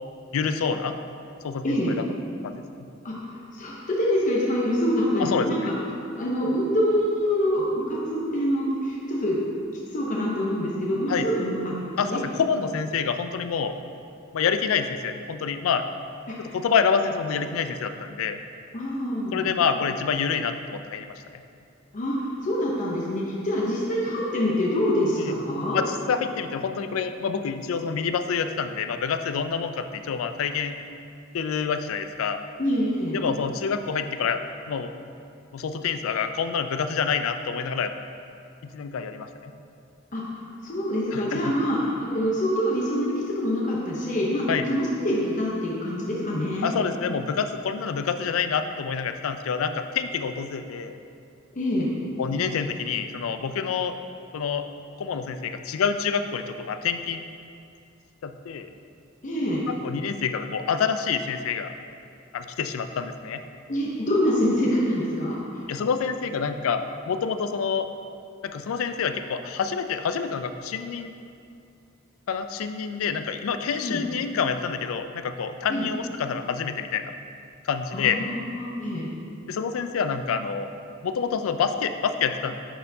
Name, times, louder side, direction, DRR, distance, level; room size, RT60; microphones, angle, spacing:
voice 1, 0.3-0.9 1.4-2.1 2.4-2.6 5.2-5.5 11.1-11.3 12.0-13.7 14.3-15.8 16.4-18.4 19.3-21.1 25.2-25.3 25.7-30.8 31.3-32.4 33.1-34.9 35.5-37.9 38.7-39.5 41.1-41.4 44.5-44.7 46.6-51.0 52.2-54.0 54.3-54.7 55.0-57.2 58.2-58.7 59.7-61.7 62.3-63.4 65.7-67.9 68.4-71.1 72.3-77.2 77.6-78.2 79.5-80.7 81.0-82.5, left 6 dB, 85° left, 9 dB, 0.4 m, -27 dB
voice 2, 1.6-2.0 3.0-5.7 6.1-9.4 9.9-12.2 16.3-16.6 18.7-19.5 21.9-25.8 32.6-33.2 40.1-40.2 40.6-46.8 51.5-51.9 59.2-59.7 63.7-65.4 73.8-74.0 75.7-75.9 77.9-79.1, equal, 40° left, -4 dB, 0.7 m, -25 dB
10.0 x 4.3 x 2.7 m, 2.5 s
head